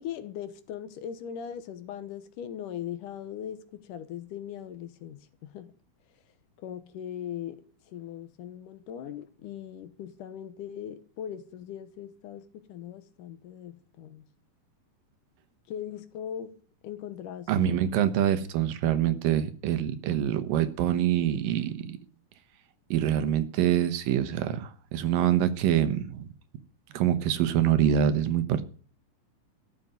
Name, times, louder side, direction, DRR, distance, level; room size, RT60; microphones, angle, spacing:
voice 1, 0.0-5.7 6.6-14.3 15.7-16.5 16.8-17.8, left 9 dB, 75° left, 2.5 m, -40 dB
voice 2, 17.5-22.0 22.9-26.3 26.9-28.6, right 10 dB, 80° right, 2.7 m, -25 dB
13.0 x 6.9 x 9.3 m
omnidirectional pair, 3.9 m